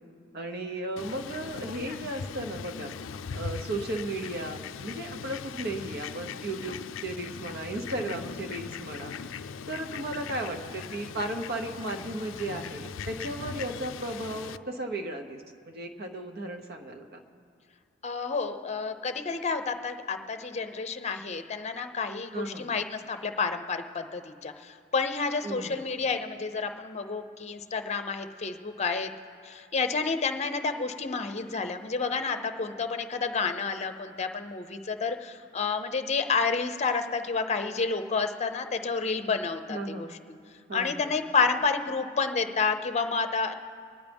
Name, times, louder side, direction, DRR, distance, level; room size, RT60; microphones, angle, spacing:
voice 1, 0.3-2.9 3.3-9.2 9.7-17.2 22.3-22.7 25.4-25.8 39.7-40.1 40.7-41.1, right 1 dB, 55° right, 4 dB, 1.1 m, -35 dB
Fowl, 1.0-14.6, left 6 dB, 80° left, 0.4 m, -40 dB
voice 2, 18.0-29.1 29.4-40.4 40.7-43.5, left 4 dB, 35° left, 8 dB, 0.7 m, -30 dB
24.5 x 10.5 x 3.5 m, 2.3 s
head